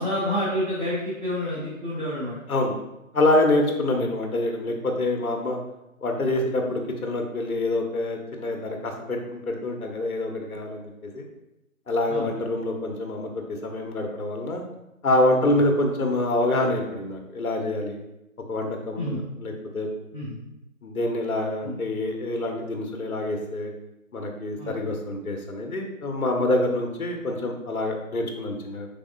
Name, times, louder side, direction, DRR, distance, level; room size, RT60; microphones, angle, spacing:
voice 1, 0.0-2.4 3.9-4.1 6.6-6.7 12.1-12.3 15.5-15.6 19.0-19.2 20.1-20.4 21.6-21.8 24.6-24.7, left 1 dB, 35° right, -12 dB, 1.0 m, -29 dB
voice 2, 3.1-5.6 6.0-11.3 11.9-14.6 15.0-18.0 18.5-19.9 20.8-23.7 24.1-28.9, left 2 dB, 80° left, 3 dB, 0.8 m, -26 dB
3.5 x 3.4 x 2.5 m, 0.90 s
figure-of-eight pair, 175°, 43 cm